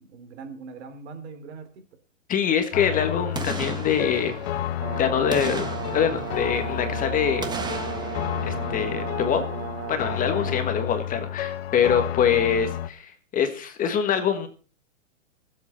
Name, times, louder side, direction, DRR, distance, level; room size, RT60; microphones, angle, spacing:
voice 1, 0.0-1.8 6.7-6.8 10.4-10.6, right 4 dB, 60° right, 7 dB, 3.4 m, -41 dB
voice 2, 2.3-4.4 5.0-7.5 8.5-9.4 9.9-14.5, left 8 dB, 20° left, 7 dB, 1.4 m, -24 dB
sound 1, 2.7-12.9, left 11 dB, 55° left, 1.0 m, -31 dB
Boom, 3.3-4.9 5.3-6.9 7.4-9.6 10.0-10.1, right 4 dB, 10° right, 1.4 m, -36 dB
Brass instrument, 4.8-10.6, right 10 dB, 40° right, 2.2 m, -35 dB
20.5 x 7.8 x 4.4 m, 0.39 s
hypercardioid pair, 130°, 37 cm